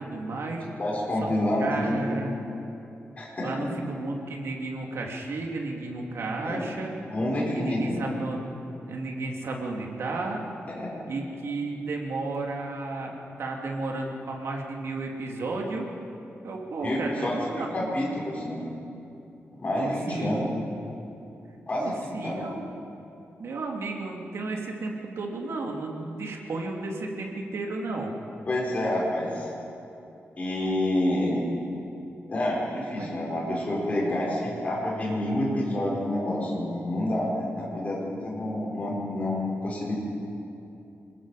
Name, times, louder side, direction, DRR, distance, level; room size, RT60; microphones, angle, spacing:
voice 1, 0.0-0.7 1.2-1.3 1.6-2.3 3.4-7.1 7.5-10.4 11.1-15.9 16.4-17.9 19.7-20.4 21.8-22.7 23.4-28.1 33.0-33.1, right 3 dB, 70° right, 0 dB, 3.0 m, -33 dB
voice 2, 0.8-2.2 3.2-3.5 6.4-6.6 7.1-8.0 10.7-10.9 16.8-18.6 19.6-20.6 21.7-22.5 28.5-29.5 30.4-31.4 32.3-39.9, left 1 dB, 30° left, -5 dB, 5.4 m, -28 dB
26.5 x 21.5 x 5.1 m, 2.8 s
wide cardioid pair, 180°, 5 cm